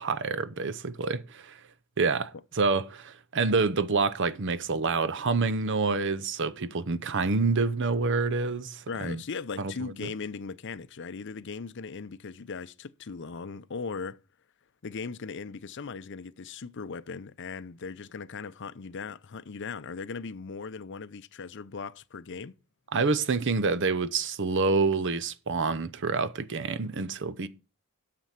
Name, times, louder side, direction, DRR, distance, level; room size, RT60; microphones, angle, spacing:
voice 1, 0.0-1.6 2.0-9.2 9.6-9.7 10.0-10.1 22.9-27.5, right 4 dB, 55° right, 0.7 m, -27 dB
voice 2, 8.9-14.2 14.8-22.6, left 5 dB, 55° left, 0.6 m, -38 dB
9.3 x 6.7 x 5.8 m
head